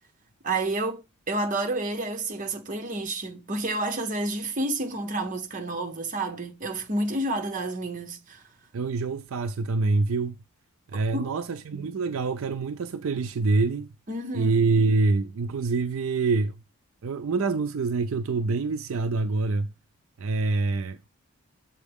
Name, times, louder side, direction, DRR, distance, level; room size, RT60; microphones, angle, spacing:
voice 1, 0.4-8.4 10.9-11.3 11.7-11.9 14.1-14.6, right 2 dB, 35° right, 0.8 m, -30 dB
voice 2, 8.7-10.4 10.9-13.9 14.3-16.6 17.0-19.7 20.2-21.1, right 3 dB, 65° right, 0.4 m, -25 dB
7.3 x 4.4 x 3.5 m
head